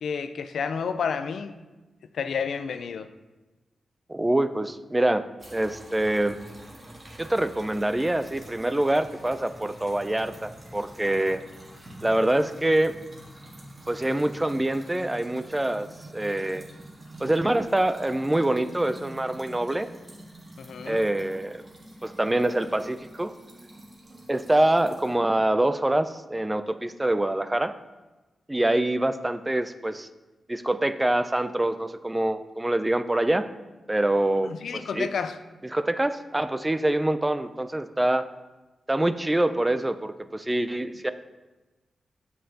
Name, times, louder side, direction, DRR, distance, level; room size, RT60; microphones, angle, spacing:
voice 1, 0.0-1.5 2.1-3.1 20.6-21.0 34.4-35.4, left 6 dB, 80° left, 11 dB, 0.3 m, -30 dB
voice 2, 4.1-5.2 5.5-6.4 7.2-11.4 12.0-12.9 13.9-15.9 16.1-16.7 17.2-19.9 20.9-21.6 22.0-23.3 24.3-27.7 28.5-30.1 30.5-33.5 33.9-35.1 35.7-38.3 38.9-41.1, right 1 dB, 15° right, 11 dB, 0.4 m, -25 dB
sound 1, 5.4-25.1, right 1 dB, 35° right, 1.5 m, -46 dB
7.6 x 5.4 x 2.8 m, 1.1 s
cardioid pair, 60°, 0 cm